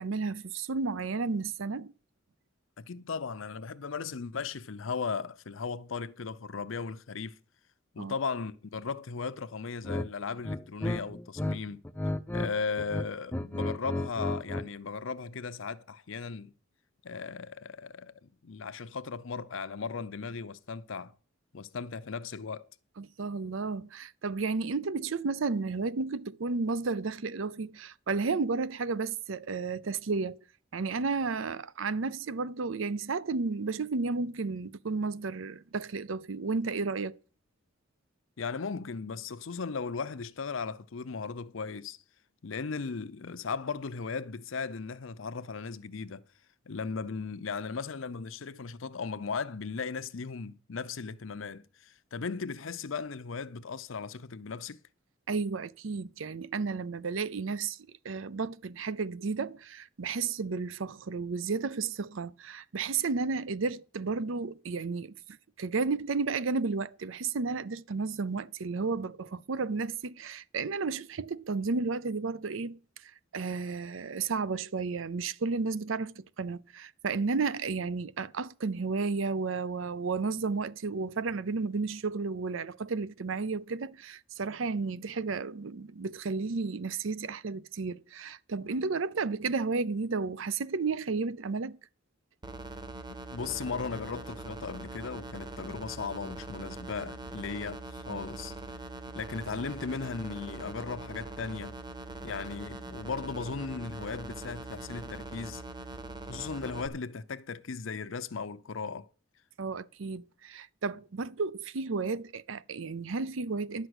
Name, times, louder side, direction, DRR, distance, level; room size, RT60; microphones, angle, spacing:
voice 1, 0.0-1.9 8.0-8.1 23.0-30.4 30.7-37.2 55.3-57.8 58.0-65.2 65.6-72.8 73.3-91.8 98.1-98.2 109.6-113.9, right 4 dB, 80° right, 0.6 m, -32 dB
voice 2, 2.8-7.4 7.9-11.8 12.3-16.5 17.0-21.1 21.5-22.7 38.4-42.0 42.4-46.2 46.7-54.8 93.3-98.6 99.1-101.8 102.2-105.6 106.3-109.1, left 5 dB, 80° left, 0.6 m, -37 dB
sound 1, 9.8-10.1 10.4-11.6 11.8-12.5 12.8-14.7, left 1 dB, 10° left, 0.5 m, -33 dB
sound 2, 92.4-106.9, right 2 dB, 20° right, 1.0 m, -42 dB
11.0 x 6.2 x 8.0 m
head